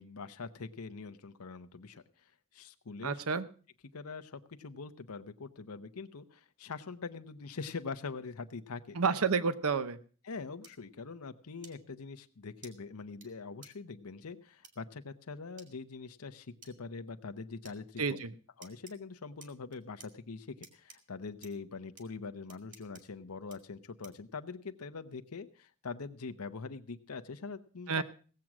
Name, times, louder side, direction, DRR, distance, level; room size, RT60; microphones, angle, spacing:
voice 1, 0.0-3.2 3.9-9.0 10.2-18.2 18.6-28.0, left 4 dB, 90° left, 9 dB, 0.8 m, -43 dB
voice 2, 3.0-3.5 8.9-10.0 18.0-18.3 27.9-28.0, right 5 dB, 85° right, 14 dB, 0.8 m, -30 dB
sound 1, 10.6-10.7 11.6-11.7 12.6-12.7 13.2-13.3 13.6-13.7 14.6-14.7 15.6-15.7 16.6-16.7 17.6-17.8 18.6-18.9 19.4-20.1 20.6-21.0 21.4-21.5 22.0-22.1 22.5-23.0 23.5-23.6 24.0-24.3, right 5 dB, 35° right, 2.2 m, -53 dB
17.0 x 7.6 x 6.0 m, 0.41 s
head